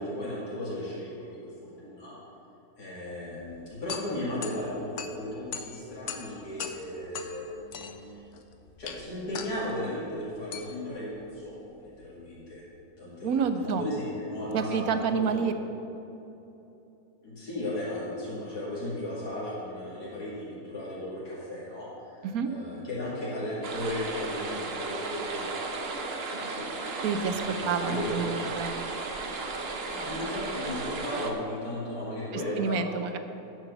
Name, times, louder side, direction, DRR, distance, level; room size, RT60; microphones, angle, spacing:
voice 1, 0.0-1.5 1.8-2.1 2.8-8.0 8.8-12.6 13.0-15.4 17.2-26.7 27.1-28.2 29.9-32.8, left 1 dB, 85° left, -8 dB, 3.1 m, -36 dB
sound 1, 3.4-12.6, left 7 dB, 60° left, 0.9 m, -42 dB
voice 2, 13.2-13.8 14.5-15.5 22.2-22.5 27.0-28.9 32.3-33.2, right 6 dB, 70° right, 8 dB, 1.1 m, -29 dB
sound 2, 23.6-31.3, right 3 dB, 45° right, 1.0 m, -35 dB
10.5 x 6.1 x 6.9 m, 3.0 s
omnidirectional pair, 1.6 m